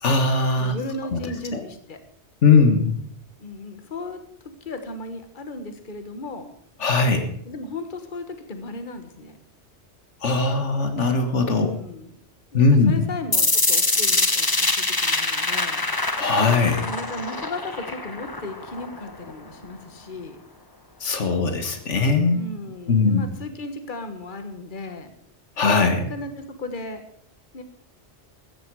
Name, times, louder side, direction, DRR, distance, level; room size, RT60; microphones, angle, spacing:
voice 1, 0.0-0.7 1.1-1.2 1.5-1.6 2.4-3.0 6.8-7.3 10.2-11.7 12.5-12.9 16.2-16.9 21.0-22.4 22.9-23.3 25.6-26.1, left 4 dB, 85° left, 7 dB, 1.8 m, -19 dB
voice 2, 0.6-2.0 3.4-4.2 4.6-6.5 7.4-9.4 11.5-12.1 12.5-15.8 16.8-20.4 22.3-25.1 26.0-27.0 27.5-27.6, left 2 dB, 45° left, 7 dB, 1.6 m, -35 dB
sound 1, 13.3-19.3, left 2 dB, 20° left, 1.0 m, -24 dB
15.0 x 13.5 x 4.8 m, 0.67 s
omnidirectional pair, 1.2 m